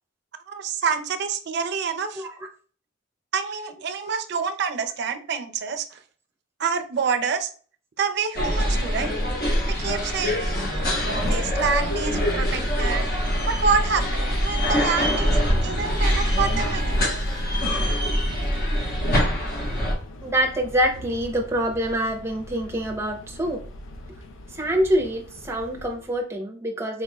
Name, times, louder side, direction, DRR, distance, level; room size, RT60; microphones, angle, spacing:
voice 1, 0.5-2.2 3.3-6.0 6.6-7.5 8.0-9.1 9.7-10.6 11.0-13.1 13.5-17.2, right 5 dB, 55° right, 9 dB, 0.4 m, -27 dB
sound 1, 8.3-19.9, equal, 50° left, 1.0 m, -24 dB
sound 2, 10.5-26.2, left 1 dB, 75° left, 0.5 m, -38 dB
voice 2, 20.2-23.6 24.5-27.0, equal, 15° right, 2 dB, 0.6 m, -25 dB
4.2 x 3.0 x 2.2 m, 0.41 s
head